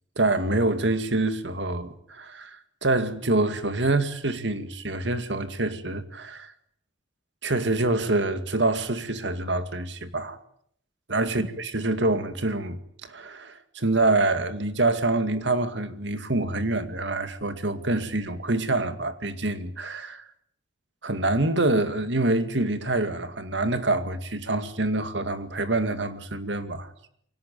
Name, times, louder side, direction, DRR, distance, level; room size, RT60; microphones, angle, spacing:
voice 1, 0.2-6.5 7.4-10.4 11.1-20.2 21.0-26.9, right 2 dB, 70° right, 2.3 m, -26 dB
24.0 x 18.0 x 9.2 m
head